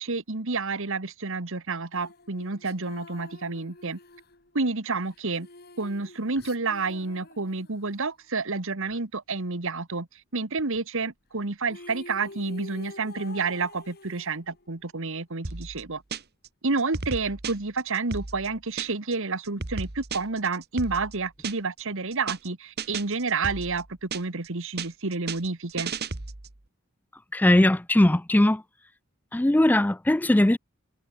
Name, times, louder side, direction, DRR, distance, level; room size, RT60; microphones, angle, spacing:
voice 1, 0.0-4.0 4.5-5.5 5.8-10.1 10.3-16.0 16.6-25.9, right 3 dB, 65° right, 1.7 m, -29 dB
sound 1, 1.9-8.1 11.3-11.4 11.6-14.8, left 2 dB, 50° left, 5.0 m, -47 dB
sound 2, 15.4-16.5 16.8-19.1 19.4-21.8 22.1-22.5 22.8-24.5 24.8-26.6, right 4 dB, 50° right, 1.5 m, -35 dB
voice 2, 27.3-28.6 29.3-30.6, left 1 dB, 10° left, 0.4 m, -20 dB
head